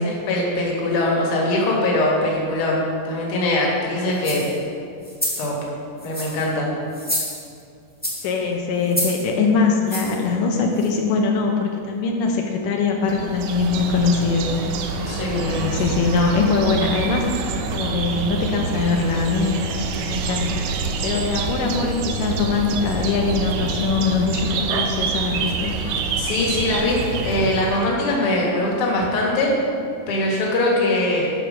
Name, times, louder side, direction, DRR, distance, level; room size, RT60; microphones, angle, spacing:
voice 1, 0.1-4.4 5.4-5.6 6.0-6.7 15.1-15.4 26.2-29.5 30.1-31.3, left 1 dB, 50° left, -3 dB, 2.2 m, -22 dB
sound 1, 4.2-4.5 5.0-5.5 6.0-6.5 6.9-7.6 8.0-8.3 8.9-9.2 9.9-10.2 10.8-10.9, left 1 dB, 15° left, 0.3 m, -28 dB
voice 2, 8.2-14.5 15.2-17.3 17.5-19.6 20.1-20.7 21.0-25.7, left 4 dB, 80° left, 1 dB, 2.3 m, -22 dB
sound 2, 13.1-27.9, right 4 dB, 80° right, 2.3 m, -26 dB
11.0 x 4.9 x 6.4 m, 2.5 s
omnidirectional pair, 3.9 m